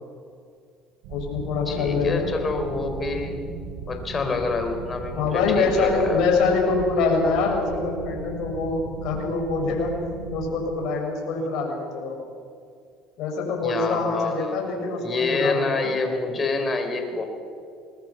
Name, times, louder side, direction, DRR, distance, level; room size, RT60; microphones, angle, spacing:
sound 1, 1.0-10.6, right 3 dB, 75° right, 4.1 m, -37 dB
voice 1, 1.1-2.3 5.2-10.0 10.3-12.1 13.2-15.9, left 4 dB, 70° left, 1 dB, 7.0 m, -24 dB
voice 2, 1.7-3.4 3.9-6.2 13.6-14.6 15.0-17.2, left 3 dB, 30° left, 5 dB, 4.8 m, -27 dB
24.5 x 21.0 x 6.2 m, 2.3 s
supercardioid pair, 90°, 0 cm